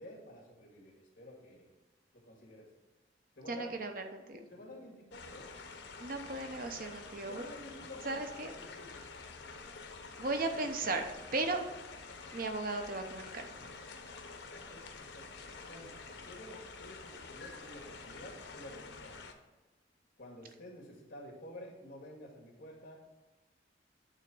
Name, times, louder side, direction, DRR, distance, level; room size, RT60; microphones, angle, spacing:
voice 1, 0.0-1.7 2.1-2.7 3.4-3.7 4.3-5.5 7.3-9.0 14.5-15.3 15.7-19.1 20.2-23.0, left 1 dB, 55° left, -2 dB, 2.2 m, -51 dB
voice 2, 3.5-4.4 6.0-7.4 8.0-8.5 10.2-11.6 12.3-13.7, right 2 dB, 55° right, 5 dB, 0.8 m, -36 dB
sound 1, 5.1-19.3, left 4 dB, 75° left, 0.8 m, -48 dB
9.0 x 3.7 x 6.1 m, 1.2 s
head